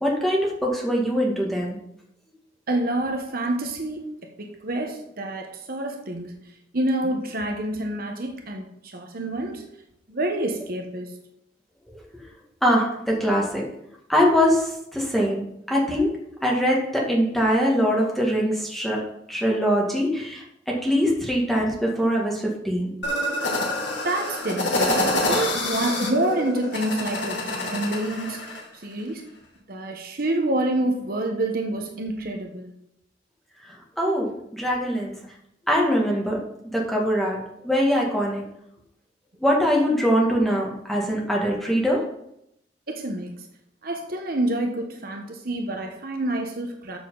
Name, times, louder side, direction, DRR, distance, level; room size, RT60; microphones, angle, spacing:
voice 1, 0.0-1.8 12.6-13.6 14.1-22.9 33.7-35.2 35.7-38.4 39.4-42.1, equal, ahead, 2.4 m, -23 dB
voice 2, 2.7-4.1 4.4-6.4 6.7-8.6 8.9-9.6 10.1-11.2 24.0-28.6 28.8-29.2 29.7-32.7 42.9-43.3 43.8-47.0, right 1 dB, 50° right, 1.2 m, -27 dB
sound 1, 23.0-28.6, left 1 dB, 75° left, 2.5 m, -26 dB
13.0 x 6.8 x 4.0 m
head